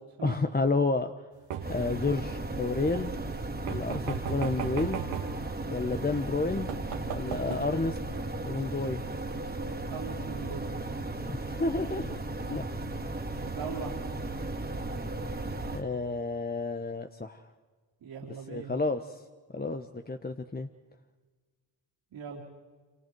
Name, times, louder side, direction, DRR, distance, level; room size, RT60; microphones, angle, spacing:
voice 1, 0.2-1.1 1.7-3.1 3.6-5.0 5.7-6.7 7.1-8.0 8.5-9.0 11.3-12.1 12.5-12.6 15.7-17.4 18.3-19.2 19.5-20.7, left 3 dB, 20° left, 7 dB, 1.2 m, -30 dB
sound 1, 1.5-2.0 3.7-5.4 6.2-6.3 6.7-7.6, right 8 dB, 80° right, 2.5 m, -36 dB
sound 2, 1.6-15.8, right 2 dB, 20° right, 2.6 m, -36 dB
voice 2, 9.9-10.7 13.4-14.0 18.0-18.8 22.1-22.4, right 6 dB, 60° right, -4 dB, 3.9 m, -40 dB
28.0 x 26.5 x 4.7 m, 1.4 s
hypercardioid pair, 55°, 49 cm